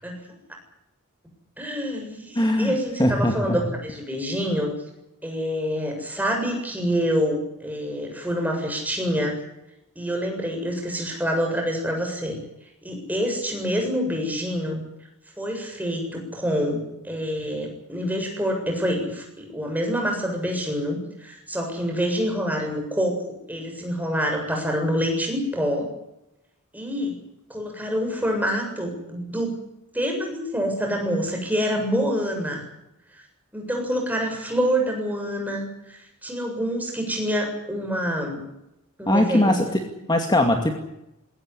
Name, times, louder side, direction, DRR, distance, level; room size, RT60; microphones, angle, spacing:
voice 1, 0.0-0.4 1.6-4.7 5.2-9.4 10.0-12.4 12.8-14.8 15.4-23.1 23.5-25.9 26.7-27.2 27.5-29.6 29.9-32.7 33.5-38.4 39.0-39.7, equal, 10° right, 2 dB, 7.4 m, -26 dB
voice 2, 2.4-2.7 3.0-3.6 39.1-40.8, left 1 dB, 20° left, 4 dB, 2.3 m, -21 dB
22.0 x 17.5 x 9.9 m, 0.87 s
head